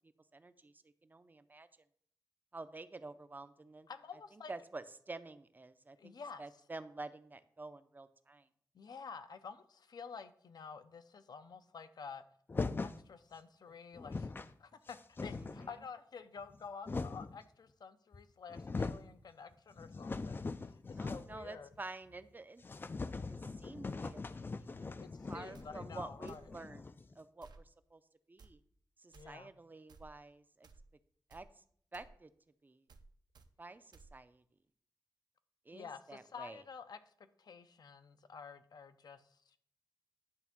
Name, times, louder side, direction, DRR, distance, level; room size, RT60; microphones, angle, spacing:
voice 1, 0.3-1.7 2.5-3.9 4.3-8.5 15.4-15.8 21.0-22.7 23.3-28.0 28.3-28.6 29.0-30.7 31.3-31.6 31.9-32.3 32.6-32.8 33.6-34.4 35.7-36.6, right 3 dB, 25° right, 12 dB, 0.5 m, -50 dB
voice 2, 3.9-4.5 6.0-6.4 8.7-12.2 12.8-21.7 25.0-26.4 29.1-29.5 35.7-37.1 37.4-39.6, left 5 dB, 70° left, 10 dB, 0.6 m, -50 dB
sound 1, 12.5-13.0 13.7-13.8 13.9-14.5 14.9-15.7 16.4-17.4 18.1-18.2 18.5-19.1 19.5-21.5 21.7-21.8 22.1-22.2 22.6-27.1, left 3 dB, 30° left, 0.3 m, -41 dB
sound 2, 25.5-25.7 26.3-26.5 27.4-27.6 28.4-28.5 29.1-29.3 29.9-30.1 30.6-30.8 31.3-31.5 31.9-32.1 32.9-33.1 33.3-33.5 33.9-34.1, right 4 dB, 75° right, 0.6 m, -58 dB
10.5 x 3.5 x 5.9 m, 0.63 s
wide cardioid pair, 130°, 7 cm